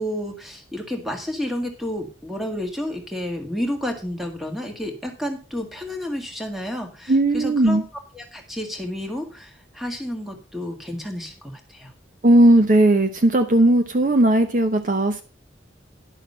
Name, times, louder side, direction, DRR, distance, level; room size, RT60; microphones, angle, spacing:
voice 1, 0.0-7.9 8.1-11.9, equal, ahead, 3 dB, 1.7 m, -31 dB
voice 2, 7.1-7.8 12.2-15.2, right 1 dB, 45° right, 7 dB, 0.7 m, -17 dB
11.0 x 6.4 x 5.4 m, 0.34 s
head